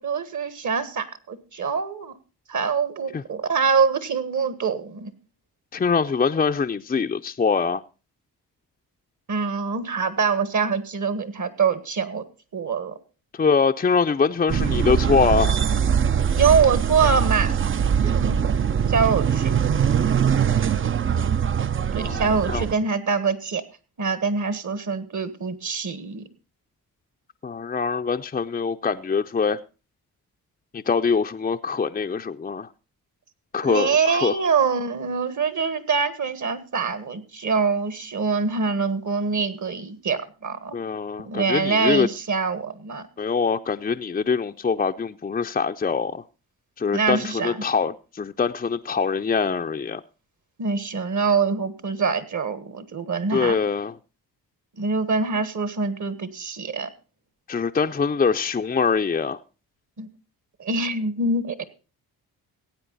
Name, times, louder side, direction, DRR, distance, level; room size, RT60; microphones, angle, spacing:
voice 1, 0.0-2.1 2.5-5.1 9.3-12.2 12.5-12.9 16.4-17.5 18.0-18.4 18.9-19.5 21.9-23.6 24.0-26.2 33.6-40.8 41.2-43.0 46.9-47.6 50.6-53.5 54.8-56.9 60.0-60.1 60.6-61.6, right 5 dB, 50° right, 13 dB, 1.5 m, -24 dB
voice 2, 5.7-7.8 13.3-15.6 22.0-22.6 27.4-29.6 30.7-32.7 33.5-34.4 40.7-42.1 43.2-46.2 46.8-50.0 53.3-54.0 57.5-59.4, left 5 dB, 20° left, 5 dB, 0.5 m, -23 dB
sound 1, 14.5-22.7, right 7 dB, 35° right, 0.5 m, -22 dB
16.0 x 8.5 x 4.0 m, 0.33 s
supercardioid pair, 60°, 39 cm